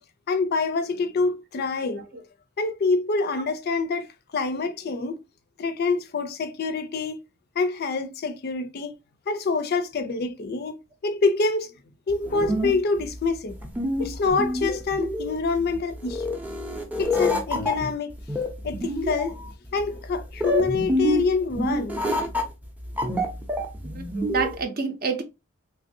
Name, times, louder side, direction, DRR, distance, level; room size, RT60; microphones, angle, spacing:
voice 1, 0.3-2.1 2.6-5.2 5.6-7.2 7.6-8.9 9.3-10.7 11.0-11.7 12.1-13.6 14.0-16.2 17.0-18.1 18.6-19.4 19.7-22.0, left 4 dB, 50° left, 0.4 m, -26 dB
sound 1, 12.1-24.6, left 1 dB, 10° right, 0.5 m, -27 dB
voice 2, 23.8-25.2, right 5 dB, 45° right, 0.6 m, -28 dB
3.2 x 2.5 x 2.6 m
head